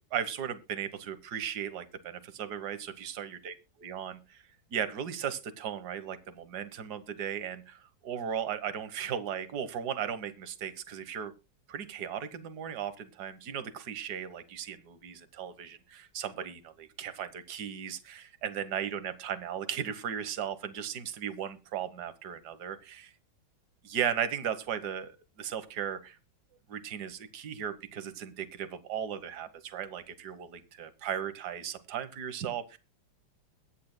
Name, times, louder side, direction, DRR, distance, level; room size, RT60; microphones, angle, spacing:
voice 1, 0.1-4.4 4.7-11.3 11.7-23.0 23.8-26.2 26.7-32.8, right 8 dB, 60° right, 12 dB, 1.7 m, -36 dB
22.5 x 9.4 x 2.2 m, 0.28 s
omnidirectional pair, 2.1 m